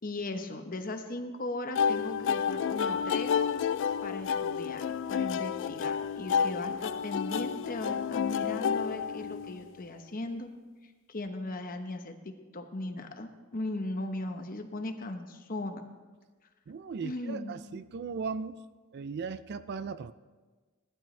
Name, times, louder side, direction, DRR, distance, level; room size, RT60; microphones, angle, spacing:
voice 1, 0.0-3.4 4.0-10.5 10.8-15.8 17.0-17.6, left 2 dB, 40° left, 6 dB, 1.0 m, -38 dB
sound 1, 1.8-9.7, left 7 dB, 55° left, 0.3 m, -30 dB
voice 2, 16.7-18.6 18.9-20.1, right 5 dB, 50° right, 14 dB, 0.4 m, -37 dB
17.5 x 12.0 x 3.3 m, 1.3 s
head